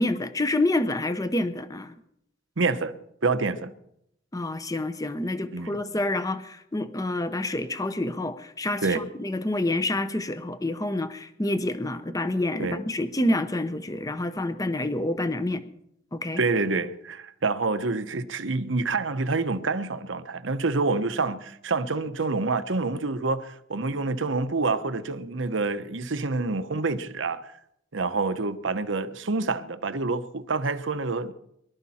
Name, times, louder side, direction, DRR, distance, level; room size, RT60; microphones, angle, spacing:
voice 1, 0.0-2.0 4.3-15.6 16.1-16.4, left 1 dB, 20° left, 0.8 m, -28 dB
voice 2, 2.6-2.9 3.2-3.7 5.5-5.8 8.8-9.1 12.6-12.8 16.4-27.5 27.9-31.3, right 3 dB, 75° right, 0.9 m, -27 dB
23.5 x 12.5 x 4.3 m
head